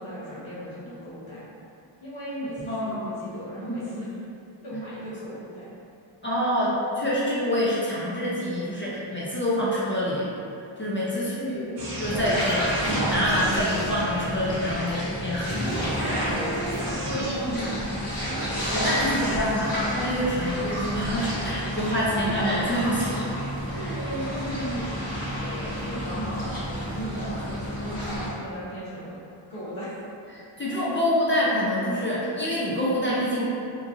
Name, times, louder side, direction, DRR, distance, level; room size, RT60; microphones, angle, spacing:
voice 1, 0.0-1.5 2.0-4.2 4.6-5.7 11.1-11.9 15.8-18.0 18.6-19.7 21.4-21.8 22.2-22.4 23.7-25.0 25.4-29.2 29.5-30.0, equal, 80° left, -10 dB, 1.0 m, -36 dB
voice 2, 2.7-3.1 6.2-10.3 10.8-11.6 12.0-15.8 18.7-23.2 30.3-33.5, equal, 25° left, -8 dB, 0.4 m, -26 dB
sound 1, 11.8-14.7 15.5-17.3, right 1 dB, 60° right, 0.7 m, -31 dB
sound 2, 12.0-28.3, equal, 50° left, 1.1 m, -31 dB
3.0 x 2.3 x 2.5 m, 2.6 s
wide cardioid pair, 95°, 48 cm